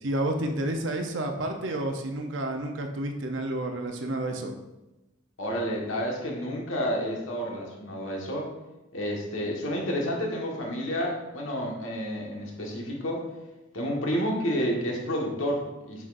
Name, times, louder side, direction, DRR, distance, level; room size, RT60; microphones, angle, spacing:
voice 1, 0.0-4.6, right 1 dB, 70° right, 4 dB, 0.7 m, -30 dB
voice 2, 5.4-8.5 8.9-13.2 13.7-16.0, equal, 90° left, -1 dB, 1.6 m, -30 dB
8.0 x 6.1 x 2.6 m, 1.0 s
head